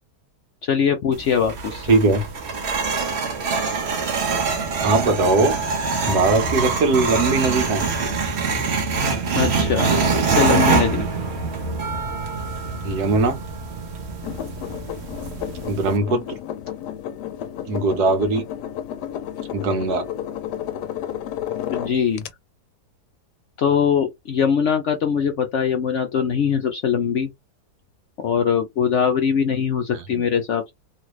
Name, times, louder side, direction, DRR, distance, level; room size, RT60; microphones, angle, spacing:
voice 1, 0.6-1.9 9.3-9.9 10.2-11.0 21.7-22.2 23.6-27.3 28.2-30.7, left 7 dB, 65° left, 0.7 m, -21 dB
sound 1, 1.1-16.0, right 4 dB, 50° right, 0.9 m, -24 dB
voice 2, 1.9-2.2 4.8-5.6 6.0-8.1 12.8-13.4 15.7-16.4 17.7-18.4 19.5-20.0 29.9-30.0, right 3 dB, 75° right, 1.4 m, -20 dB
sound 2, 14.2-22.3, left 10 dB, 80° left, 1.2 m, -32 dB
3.2 x 2.5 x 3.0 m
omnidirectional pair, 1.8 m